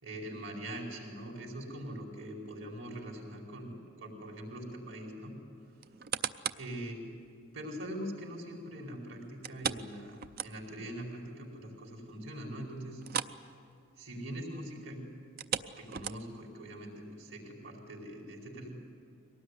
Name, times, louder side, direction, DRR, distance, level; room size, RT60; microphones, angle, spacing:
voice 1, 0.0-5.3 6.6-7.0 7.5-13.0 14.0-15.0 15.8-18.7, right 1 dB, 70° right, -1 dB, 5.0 m, -42 dB
sound 1, 5.8-6.7 7.2-7.3 9.4-10.9 11.2-11.3 11.8-11.9 13.0-13.4 13.7-13.9 15.2-16.5 17.1-17.2, right 8 dB, 45° right, 0.6 m, -37 dB
23.5 x 18.5 x 9.6 m, 2.4 s
head